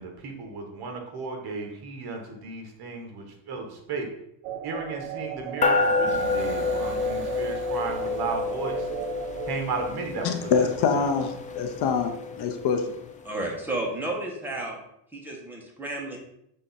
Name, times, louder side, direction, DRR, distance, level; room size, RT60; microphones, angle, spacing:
voice 1, 0.0-4.1 4.6-8.9 9.4-11.1, right 4 dB, 50° right, 3 dB, 1.4 m, -34 dB
sound 1, 4.4-9.5, right 10 dB, 80° right, 0.7 m, -36 dB
sound 2, 5.6-13.3, left 4 dB, 20° left, 0.3 m, -29 dB
sound 3, 6.1-10.0, right 3 dB, 25° right, 1.1 m, -43 dB
voice 2, 10.2-12.9, left 6 dB, 50° left, 6 dB, 0.7 m, -25 dB
voice 3, 13.2-14.8 15.1-16.2, right 2 dB, 5° right, -2 dB, 1.2 m, -32 dB
6.5 x 3.7 x 4.1 m, 0.77 s
cardioid pair, 145°, 50 cm